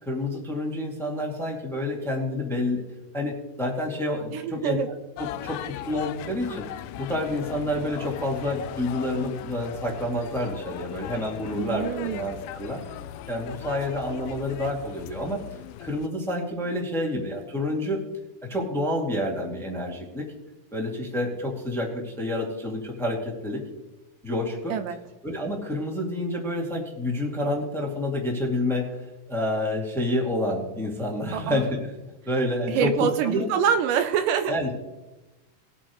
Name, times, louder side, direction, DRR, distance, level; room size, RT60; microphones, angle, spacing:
voice 1, 0.0-2.8 3.1-4.8 5.2-6.6 7.0-12.8 13.3-15.4 15.8-18.0 18.5-20.2 20.7-23.6 24.2-24.7 25.2-31.9 32.2-33.5 34.5-34.7, left 1 dB, ahead, -1 dB, 1.5 m, -28 dB
voice 2, 4.3-4.9 11.6-12.3 24.7-25.0 31.3-31.6 32.7-34.7, right 8 dB, 80° right, 8 dB, 2.2 m, -25 dB
sound 1, 5.2-16.1, left 12 dB, 80° left, 2.1 m, -39 dB
20.5 x 8.5 x 3.1 m, 1.1 s
omnidirectional pair, 4.0 m